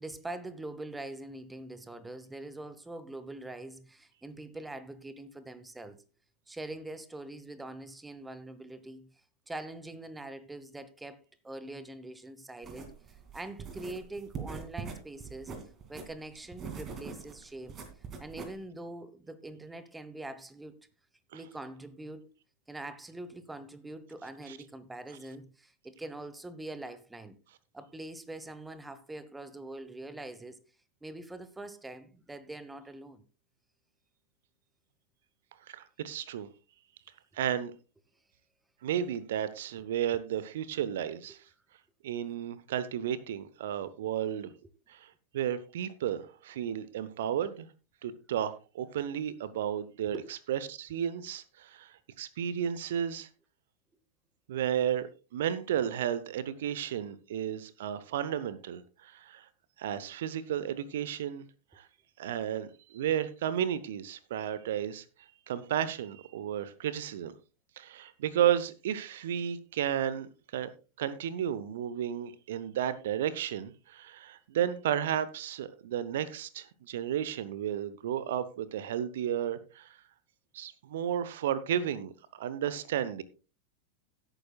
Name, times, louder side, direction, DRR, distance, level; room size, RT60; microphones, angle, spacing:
voice 1, 0.0-6.0 6.5-9.1 9.5-12.9 13.3-15.5 15.9-17.8 18.2-20.9 21.3-22.3 22.7-27.4 27.7-30.6 31.0-33.2 50.1-50.3, right 2 dB, 10° right, 1.0 m, -43 dB
sound 1, 12.6-18.6, right 5 dB, 25° right, 2.4 m, -43 dB
voice 2, 35.7-36.5 37.3-37.7 38.8-41.4 42.0-44.5 44.9-47.7 48.0-50.2 50.5-53.3 54.5-59.5 59.8-61.4 61.7-61.9 62.2-65.0 65.5-67.3 67.8-70.7 71.0-80.0 80.5-83.2, right 10 dB, 55° right, 0.8 m, -33 dB
17.0 x 9.1 x 2.3 m
figure-of-eight pair, 90°, 0 cm